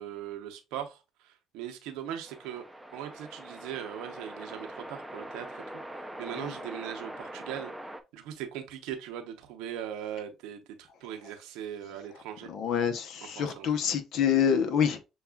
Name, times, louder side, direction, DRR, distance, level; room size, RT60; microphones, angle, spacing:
voice 1, 0.0-2.7 2.9-5.6 6.2-7.7 8.1-12.5 13.2-13.7, right 10 dB, 90° right, 0.7 m, -39 dB
sound 1, 2.3-8.0, right 1 dB, 5° right, 0.5 m, -43 dB
voice 2, 12.5-15.0, left 8 dB, 70° left, 0.7 m, -27 dB
6.9 x 2.4 x 2.3 m
cardioid pair, 90°, 0 cm